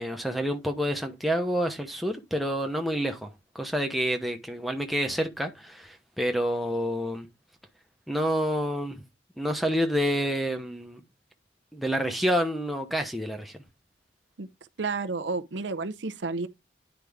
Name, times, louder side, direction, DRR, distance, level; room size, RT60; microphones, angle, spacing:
voice 1, 0.0-7.3 8.1-9.0 9.4-11.0 11.7-13.6, equal, ahead, 0.9 m, -28 dB
voice 2, 14.8-16.5, right 3 dB, 75° right, 0.7 m, -31 dB
9.9 x 4.9 x 3.5 m
head